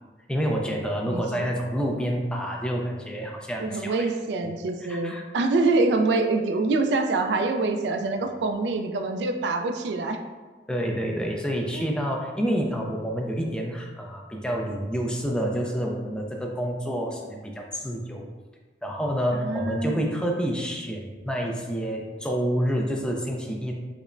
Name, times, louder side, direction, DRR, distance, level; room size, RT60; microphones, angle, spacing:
voice 1, 0.3-4.1 4.9-5.2 10.7-18.3 18.8-23.7, equal, 5° left, 0 dB, 0.3 m, -28 dB
voice 2, 1.1-1.5 3.6-10.2 11.7-11.9 19.3-20.1, right 3 dB, 70° right, 6 dB, 0.3 m, -25 dB
5.0 x 2.0 x 2.5 m, 1.3 s
head